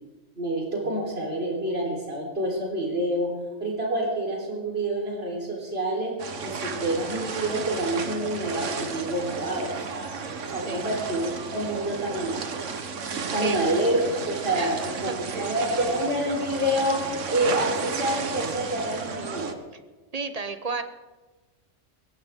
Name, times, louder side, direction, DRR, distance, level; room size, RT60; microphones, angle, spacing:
voice 1, 0.4-3.3 3.6-10.1 10.5-12.4 13.3-14.0 14.3-14.8 15.0-17.0 17.3-19.6, right 1 dB, 55° right, -2 dB, 4.3 m, -27 dB
sound 1, 6.2-19.5, right 5 dB, 80° right, 1.5 m, -33 dB
voice 2, 14.5-15.5 20.1-20.8, right 4 dB, 35° right, 9 dB, 1.0 m, -33 dB
20.5 x 16.5 x 3.7 m, 1.2 s
omnidirectional pair, 1.3 m